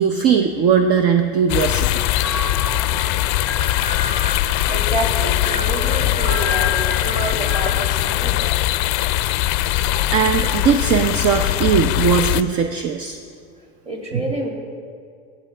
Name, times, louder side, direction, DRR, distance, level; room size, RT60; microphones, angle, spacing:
voice 1, 0.0-2.0 9.7-13.2 14.1-14.2, right 7 dB, 45° right, 6 dB, 0.7 m, -19 dB
sound 1, 1.5-12.4, left 15 dB, 60° left, 0.4 m, -21 dB
sound 2, 2.2-7.9, left 4 dB, ahead, 1.3 m, -29 dB
voice 2, 4.7-8.7 13.9-14.5, right 1 dB, 20° right, 0 dB, 2.2 m, -28 dB
15.5 x 8.0 x 3.3 m, 2.2 s
supercardioid pair, 115°, 32 cm